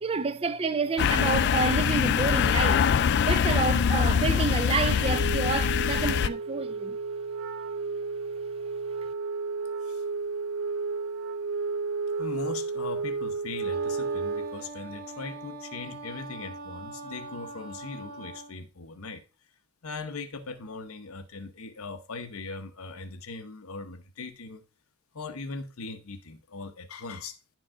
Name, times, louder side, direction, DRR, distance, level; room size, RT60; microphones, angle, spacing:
voice 1, 0.0-3.0 3.3-7.0, right 4 dB, 25° right, 0.4 m, -29 dB
sound 1, 1.0-6.3, left 7 dB, 55° left, 0.3 m, -24 dB
Wind instrument woodwind instrument, 4.9-14.7, right 4 dB, 80° right, 0.5 m, -32 dB
voice 2, 12.2-19.2 19.8-24.6 25.1-27.4, left 3 dB, 90° left, 0.9 m, -39 dB
Wind instrument woodwind instrument 2, 13.7-18.6, right 2 dB, 50° right, 1.1 m, -42 dB
9.9 x 4.7 x 3.7 m
head